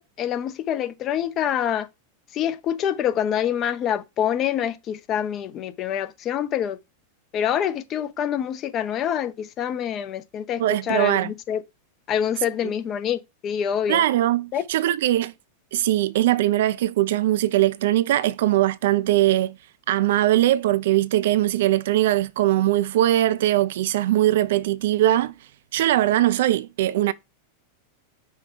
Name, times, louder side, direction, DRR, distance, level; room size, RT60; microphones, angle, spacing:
voice 1, 0.0-1.9 2.3-6.8 7.3-11.6 12.1-14.0 14.5-14.6, left 9 dB, 30° left, 0.6 m, -26 dB
voice 2, 10.6-11.3 13.9-15.3 15.7-19.6 19.9-25.3 25.7-27.1, right 14 dB, 55° right, 0.3 m, -21 dB
5.3 x 2.2 x 3.8 m
figure-of-eight pair, 90°, 0 cm